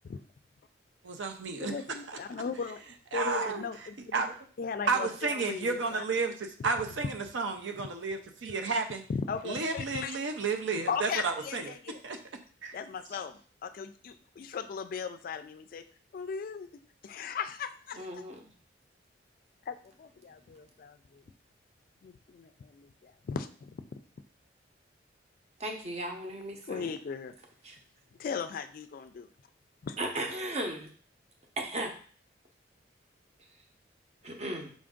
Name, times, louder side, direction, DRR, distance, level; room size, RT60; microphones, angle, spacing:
voice 1, 1.0-1.7 2.1-2.2 3.1-3.7 4.1-4.3 4.9-9.0 9.4-11.7 12.0-12.2 12.6-12.8, right 4 dB, 80° right, 0.6 m, -32 dB
voice 2, 1.6-2.8 3.1-4.1 4.6-6.0 6.6-6.7 9.1-10.2 10.9-12.0 12.7-15.8 16.1-16.7 17.0-18.2 19.7-21.2 22.0-23.8 26.7-27.3 28.2-29.3 29.8-30.0, left 5 dB, 50° left, 0.3 m, -37 dB
voice 3, 17.9-18.4 25.6-26.9 27.6-27.8 30.0-30.9 31.6-31.9 34.2-34.7, right 1 dB, 35° right, 0.8 m, -36 dB
5.0 x 2.5 x 3.6 m
head